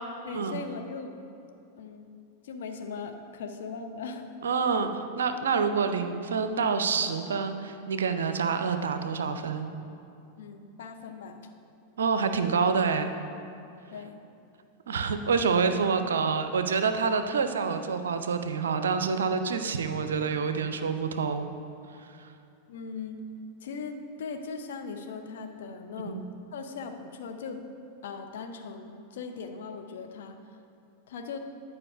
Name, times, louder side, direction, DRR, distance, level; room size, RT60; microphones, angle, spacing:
voice 1, 0.2-1.1 1.8-2.1 2.4-4.3 10.4-11.5 13.9-14.2 22.7-23.2 23.6-26.3 26.5-27.6 28.0-30.4 31.1-31.4, left 5 dB, 60° left, 5 dB, 0.6 m, -39 dB
voice 2, 4.4-9.7 12.0-13.1 14.9-21.5 22.0-22.3 26.1-26.3, right 5 dB, 65° right, 8 dB, 0.5 m, -27 dB
9.8 x 4.6 x 4.8 m, 2.6 s
figure-of-eight pair, 90°, 0 cm